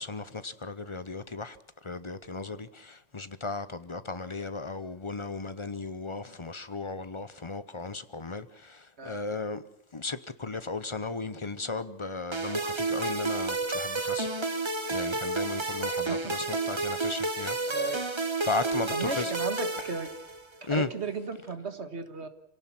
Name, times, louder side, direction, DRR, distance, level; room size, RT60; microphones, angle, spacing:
voice 1, 0.0-1.6 1.8-9.6 9.9-14.3 14.9-17.9 18.4-19.3 20.7-20.9, left 3 dB, 30° left, 0.7 m, -35 dB
sound 1, 12.3-20.6, right 3 dB, 20° right, 1.1 m, -31 dB
voice 2, 17.7-18.1 18.9-20.1 20.7-22.3, right 4 dB, 50° right, 1.9 m, -35 dB
27.0 x 17.5 x 6.0 m
omnidirectional pair, 1.5 m